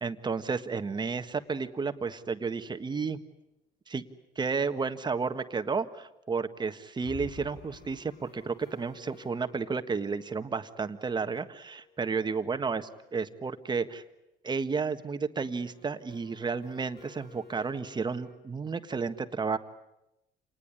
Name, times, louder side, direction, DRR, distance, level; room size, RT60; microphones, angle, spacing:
voice 1, 0.0-3.2 3.9-4.0 4.3-14.0 14.4-19.6, right 5 dB, 25° right, 9 dB, 1.6 m, -32 dB
sound 1, 1.2-2.4 2.7-2.8 3.1-3.2 7.0-12.7 15.4-18.4, left 5 dB, 80° left, 5.3 m, -53 dB
28.0 x 19.5 x 10.0 m, 0.91 s
cardioid pair, 110°, 17 cm